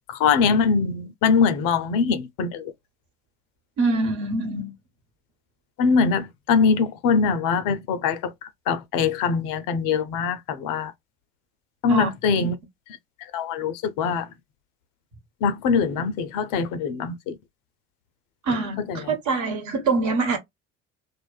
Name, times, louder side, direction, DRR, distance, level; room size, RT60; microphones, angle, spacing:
voice 1, 0.1-2.7 5.8-8.3 8.7-10.9 11.8-12.6 13.3-14.3 15.4-17.3 18.9-19.0, left 5 dB, 60° left, 0.6 m, -22 dB
voice 2, 3.8-4.7 11.9-12.1 12.4-12.5 18.4-20.4, right 3 dB, 50° right, 1.1 m, -24 dB
2.5 x 2.3 x 2.3 m
hypercardioid pair, 60°, 37 cm